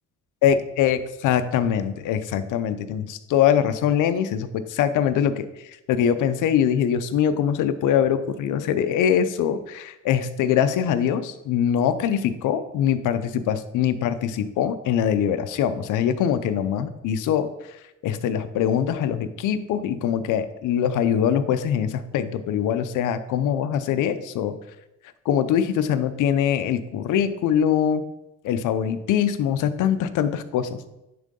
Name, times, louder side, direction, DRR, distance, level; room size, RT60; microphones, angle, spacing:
voice 1, 0.4-24.5 25.2-28.0 28.4-30.8, left 9 dB, 85° left, 11 dB, 0.6 m, -23 dB
10.5 x 3.7 x 3.8 m, 0.92 s
cardioid pair, 90°, 30 cm